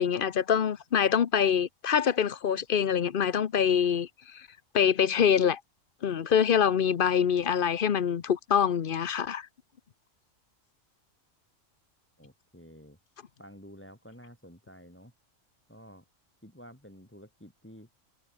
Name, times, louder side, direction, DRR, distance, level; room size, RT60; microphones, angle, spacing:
voice 1, 0.0-4.1 4.3-4.4 4.7-5.6 6.0-9.5, left 8 dB, 50° left, 0.9 m, -25 dB
voice 2, 12.2-13.0 13.4-15.1 15.7-16.0 16.4-17.9, equal, 10° left, 4.0 m, -50 dB
omnidirectional pair, 1.3 m